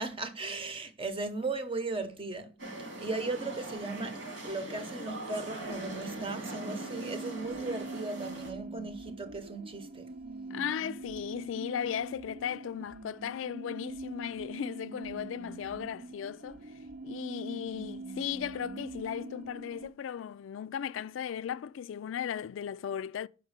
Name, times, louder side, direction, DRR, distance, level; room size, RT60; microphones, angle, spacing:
voice 1, 0.0-2.5 2.8-10.1, right 3 dB, 30° right, 0.9 m, -37 dB
sound 1, 2.6-8.5, right 1 dB, 75° right, 2.4 m, -41 dB
sound 2, 5.6-19.9, right 3 dB, 45° right, 0.5 m, -43 dB
voice 2, 10.5-16.7 17.0-23.3, left 8 dB, 90° left, 0.3 m, -36 dB
5.4 x 5.2 x 6.5 m
head